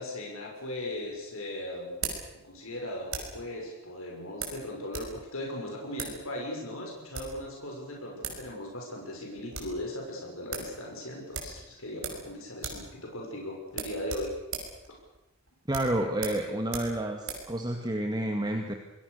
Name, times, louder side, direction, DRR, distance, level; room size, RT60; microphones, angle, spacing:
voice 1, 0.0-2.0 2.4-14.3 14.9-15.0, left 1 dB, 80° left, -1 dB, 6.3 m, -38 dB
sound 1, 0.5-3.5 4.4-5.1 5.4-5.5 5.9-6.2 6.9-7.4 8.0-8.5 8.8-8.9 9.2-9.8 10.1-10.2 10.5-10.7 11.3-12.3 12.6-12.9 13.2-13.3 13.7-17.5, right 5 dB, 65° right, 5.8 m, -39 dB
voice 2, 15.7-18.7, right 1 dB, 20° right, 3 dB, 2.0 m, -30 dB
27.0 x 21.0 x 6.7 m, 0.94 s
head